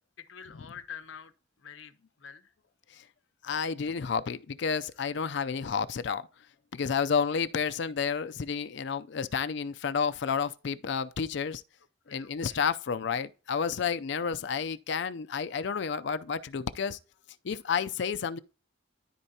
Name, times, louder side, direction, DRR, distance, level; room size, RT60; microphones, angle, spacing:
voice 1, 0.2-1.3 1.6-2.5 7.9-8.0 12.1-12.6, left 7 dB, 85° left, 0.9 m, -47 dB
voice 2, 3.4-6.3 6.7-11.6 12.1-17.0 17.4-18.4, left 6 dB, 65° left, 0.4 m, -31 dB
13.0 x 4.5 x 2.8 m
head